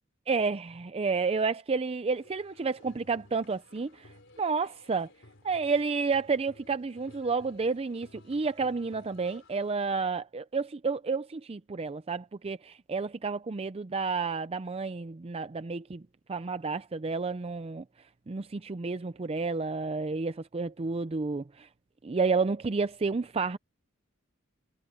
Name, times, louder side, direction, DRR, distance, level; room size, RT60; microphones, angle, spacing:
voice 1, 0.3-5.1 5.4-16.0 16.3-17.8 18.3-21.7 22.0-23.6, right 4 dB, 30° right, 0.5 m, -30 dB
sound 1, 2.1-9.9, left 2 dB, 60° left, 4.2 m, -57 dB
head